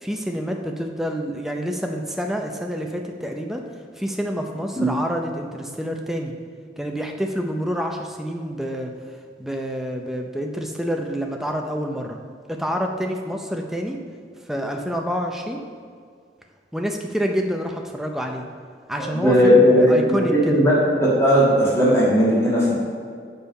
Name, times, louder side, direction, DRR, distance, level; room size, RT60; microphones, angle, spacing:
voice 1, 0.0-3.6 4.0-6.3 6.8-8.9 9.4-12.2 12.5-14.0 14.5-15.6 16.7-18.4 18.9-20.5, equal, ahead, 2 dB, 0.5 m, -27 dB
voice 2, 19.0-19.9 20.4-20.7 21.0-22.7, equal, 15° left, -7 dB, 1.7 m, -16 dB
6.7 x 5.3 x 5.2 m, 2.1 s
head